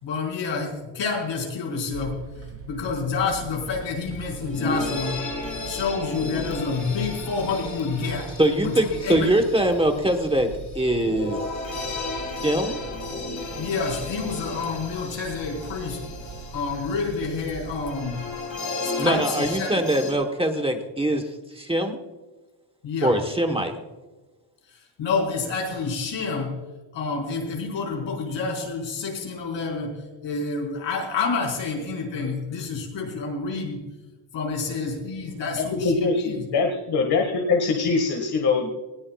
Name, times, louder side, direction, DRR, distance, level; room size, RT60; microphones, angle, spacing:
voice 1, 0.0-2.2 2.7-5.2 5.7-8.3 8.6-8.8 9.0-9.3 13.6-16.0 16.5-18.2 18.8-19.7 22.8-23.1 25.0-26.5 26.9-30.0 30.2-33.8 34.3-35.9 36.2-36.5, left 4 dB, 80° left, 0 dB, 4.9 m, -28 dB
sound 1, 1.9-18.4, right 3 dB, 75° right, 3.3 m, -41 dB
sound 2, 3.8-3.9 4.1-20.1, left 2 dB, 40° left, 4.2 m, -34 dB
voice 2, 8.4-10.5 10.7-11.4 12.4-12.8 19.0-22.0 23.0-23.8, right 1 dB, 15° right, 4 dB, 1.1 m, -23 dB
voice 3, 35.6-37.2 37.5-38.7, left 4 dB, 60° left, 2 dB, 1.7 m, -23 dB
19.5 x 19.0 x 2.3 m, 1.2 s
wide cardioid pair, 180°, 44 cm